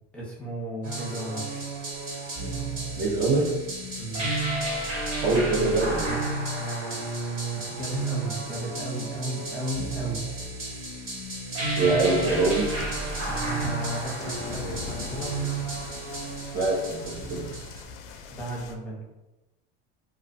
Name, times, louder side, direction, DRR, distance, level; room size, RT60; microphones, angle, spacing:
voice 1, 0.1-1.6 4.0-4.3 6.6-10.2 11.7-12.2 13.2-15.4 18.2-19.0, right 1 dB, 5° left, -6 dB, 0.8 m, -34 dB
sound 1, 0.8-17.8, right 2 dB, 50° right, 1.1 m, -32 dB
voice 2, 3.0-3.5 5.2-6.2 11.8-12.7 16.5-17.4, right 3 dB, 35° right, -4 dB, 0.6 m, -24 dB
sound 2, 12.3-18.7, left 5 dB, 65° left, 0.4 m, -41 dB
2.3 x 2.3 x 2.6 m, 1.0 s
supercardioid pair, 105°, 30 cm